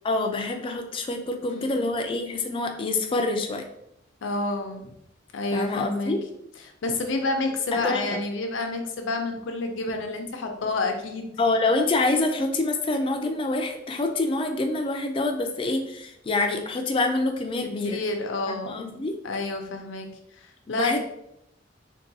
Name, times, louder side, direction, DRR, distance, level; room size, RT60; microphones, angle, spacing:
voice 1, 0.0-3.6 5.5-6.2 7.7-8.0 11.4-18.0 18.5-19.1 20.7-21.0, left 2 dB, 30° left, 5 dB, 0.3 m, -26 dB
voice 2, 1.4-1.8 4.2-4.9 5.3-6.1 6.8-11.3 17.8-18.7 19.2-20.1 20.4-21.0, left 3 dB, 90° left, 4 dB, 0.5 m, -29 dB
3.6 x 2.3 x 2.6 m, 0.79 s
head